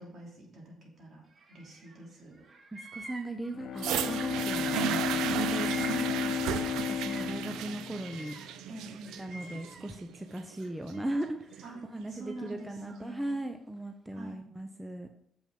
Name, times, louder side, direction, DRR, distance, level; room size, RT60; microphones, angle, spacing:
voice 1, 0.0-2.4 5.2-5.4 5.7-6.6 7.3-7.8 8.7-9.2 11.6-11.8 12.1-13.4 14.1-14.4, right 1 dB, 60° right, -2 dB, 3.2 m, -46 dB
Bird vocalization bird call bird song, 1.3-2.1 2.3-7.4 7.7-10.1 10.5-11.5 12.2-13.3, right 2 dB, 45° right, 1.3 m, -50 dB
voice 2, 2.7-6.1 6.9-8.4 9.2-11.6 11.9-15.1, right 1 dB, 10° right, 6 dB, 0.6 m, -38 dB
Bowed string instrument, 3.5-8.7, left 8 dB, 75° left, 0.7 m, -33 dB
sound 1, 3.8-11.8 12.6-12.7, right 10 dB, 90° right, 0.5 m, -35 dB
7.1 x 6.1 x 5.2 m, 0.73 s
cardioid pair, 90°, 0 cm